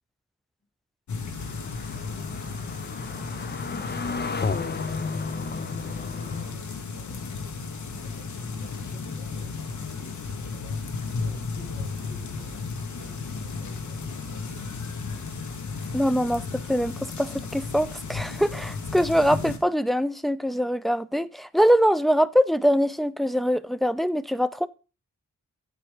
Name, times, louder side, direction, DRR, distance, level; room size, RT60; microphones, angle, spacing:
sound 1, 1.1-19.6, left 4 dB, 70° left, 1.1 m, -34 dB
sound 2, 1.4-6.5, left 4 dB, 35° left, 0.7 m, -33 dB
voice 1, 3.4-7.4 7.9-10.8 11.1-14.8 18.2-18.6, left 2 dB, 55° left, 2.0 m, -49 dB
voice 2, 15.9-16.4 16.7-24.7, equal, ahead, 0.3 m, -23 dB
8.0 x 4.7 x 4.9 m
wide cardioid pair, 85°, 30 cm